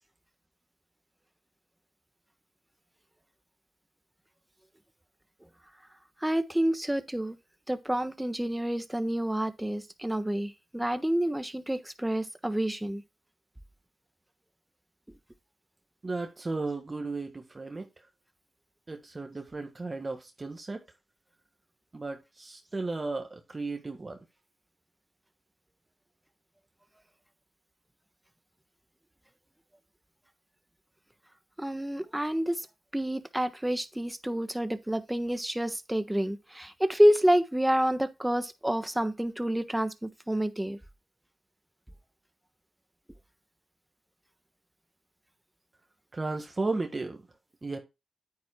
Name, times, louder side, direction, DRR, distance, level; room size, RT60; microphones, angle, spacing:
voice 1, 6.2-7.4 7.7-13.0 31.6-32.7 32.9-40.8, equal, 10° right, 1.2 m, -28 dB
voice 2, 16.0-18.1 18.9-20.8 21.9-24.2 46.1-47.2 47.6-47.8, right 3 dB, 30° right, 1.5 m, -34 dB
9.5 x 9.1 x 2.2 m
cardioid pair, 70°, 0 cm